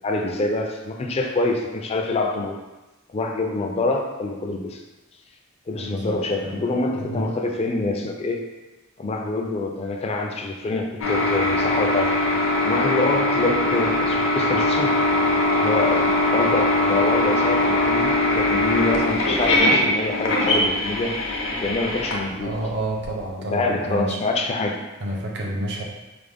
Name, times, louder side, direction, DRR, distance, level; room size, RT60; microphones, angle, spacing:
voice 1, 0.0-2.6 3.1-4.8 5.7-8.5 9.0-12.1 12.6-14.9 15.6-22.6 23.5-24.8, left 2 dB, 30° left, 2 dB, 0.4 m, -26 dB
voice 2, 5.8-7.3 22.4-24.2 25.0-25.8, right 1 dB, 60° right, -1 dB, 0.7 m, -30 dB
sound 1, 11.0-23.1, left 2 dB, 65° left, 0.7 m, -21 dB
4.7 x 2.1 x 3.5 m, 1.1 s
head